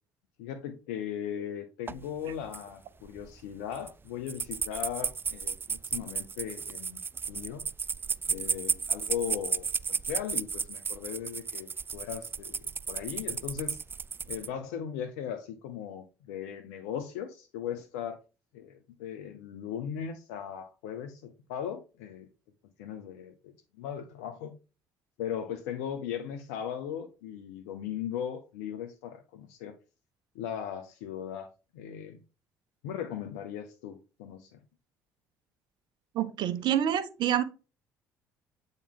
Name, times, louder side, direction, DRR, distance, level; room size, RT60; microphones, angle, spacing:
voice 1, 0.4-7.0 7.3-7.7 8.3-13.8 14.3-18.2 18.5-22.3 22.8-24.6 25.2-29.8 30.3-31.5 31.7-32.2 32.8-34.6, left 9 dB, 80° left, 0.8 m, -38 dB
sound 1, 1.9-2.0 2.3-2.6 3.1-3.3 3.8-3.9 4.3-14.5, right 5 dB, 25° right, 0.3 m, -33 dB
voice 2, 36.1-37.4, right 10 dB, 60° right, 1.1 m, -27 dB
8.4 x 4.0 x 3.7 m
hypercardioid pair, 60°, 8 cm